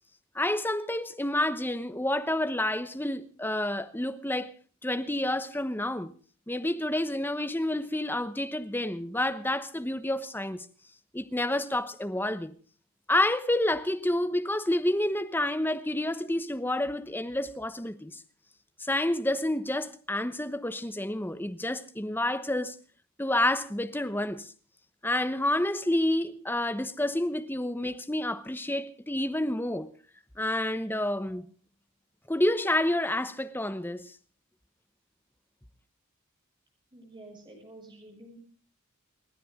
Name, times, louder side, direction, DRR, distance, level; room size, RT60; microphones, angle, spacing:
voice 1, 0.3-4.5 4.8-6.1 6.5-10.7 11.1-12.5 13.1-18.2 18.8-22.8 23.2-24.5 25.0-29.9 30.4-31.5 32.3-34.1, left 1 dB, 10° left, 1.0 m, -29 dB
voice 2, 36.9-38.4, right 1 dB, 20° right, 6.5 m, -49 dB
29.0 x 10.0 x 3.7 m
head